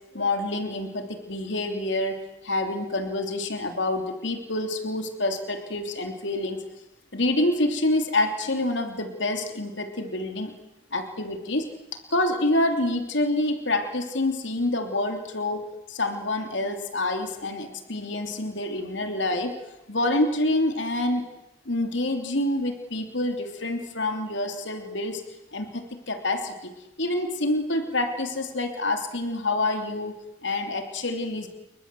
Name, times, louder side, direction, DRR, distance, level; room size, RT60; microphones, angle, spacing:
voice 1, 0.1-6.6 7.1-10.5 10.9-11.6 12.1-19.5 19.9-21.2 21.6-25.2 25.5-26.7 27.0-30.1 30.4-31.5, left 2 dB, 70° left, 5 dB, 3.1 m, -27 dB
29.5 x 24.0 x 7.8 m, 0.92 s
head